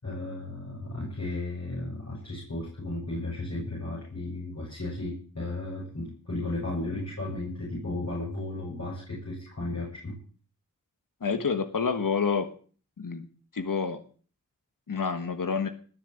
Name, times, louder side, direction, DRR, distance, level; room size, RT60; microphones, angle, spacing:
voice 1, 0.0-10.2, left 2 dB, 55° left, -5 dB, 7.5 m, -34 dB
voice 2, 11.2-12.5 13.0-13.3 13.5-14.0 14.9-15.7, left 5 dB, 85° left, 8 dB, 1.5 m, -28 dB
19.5 x 6.8 x 9.0 m, 0.43 s
cardioid pair, 40°, 32 cm